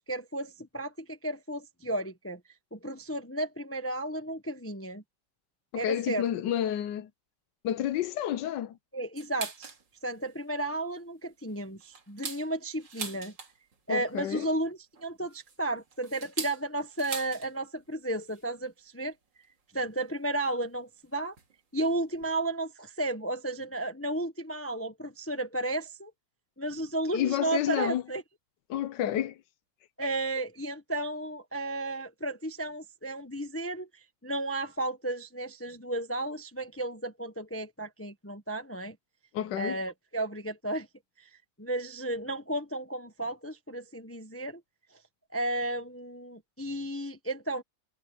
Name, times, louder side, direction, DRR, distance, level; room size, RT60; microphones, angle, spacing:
voice 1, 0.0-2.4 2.7-5.0 5.7-6.2 8.9-9.7 10.0-13.3 13.9-19.1 19.7-21.3 21.7-26.1 26.6-28.2 30.0-39.0 39.5-40.9 41.2-41.3 41.6-44.6 45.3-47.6, right 1 dB, 10° left, 0.9 m, -33 dB
voice 2, 5.7-7.1 7.6-8.8 13.9-14.5 27.1-28.0 28.7-29.4 39.3-39.8, left 11 dB, 75° left, 1.4 m, -30 dB
sound 1, 9.2-9.8 10.3-10.4 10.8-11.0 11.5-13.8 14.9-17.5 17.8-17.9 18.2-18.5 19.4-19.5 20.4-20.5 21.4-21.5 21.9-22.0 22.1-22.3, right 5 dB, 75° right, 3.1 m, -41 dB
omnidirectional pair, 2.0 m